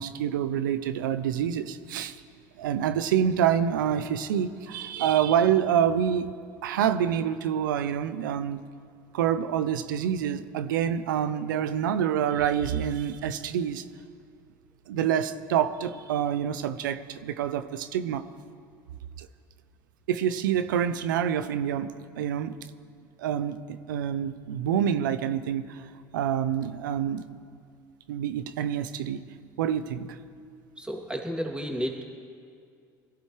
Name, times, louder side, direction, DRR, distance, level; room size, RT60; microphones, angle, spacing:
voice 1, 0.0-2.2 2.6-6.3 6.6-8.6 9.1-13.8 14.9-18.2 19.2-19.3 20.1-22.6 23.2-25.9 26.1-27.2 28.1-29.2 29.6-30.2, right 9 dB, 90° right, 12 dB, 0.7 m, -27 dB
voice 2, 30.8-32.0, equal, 10° right, 0 dB, 2.8 m, -32 dB
21.5 x 15.0 x 3.3 m, 2.3 s
hypercardioid pair, 80°, 10 cm